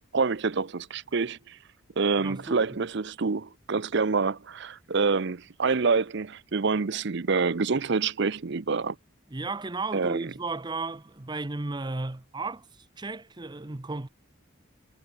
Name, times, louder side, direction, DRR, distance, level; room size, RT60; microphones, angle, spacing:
voice 1, 0.1-1.6 2.0-9.0 9.9-10.3, right 4 dB, 60° right, 0.7 m, -27 dB
voice 2, 2.2-2.8 9.3-14.1, right 3 dB, 20° right, 0.7 m, -34 dB
head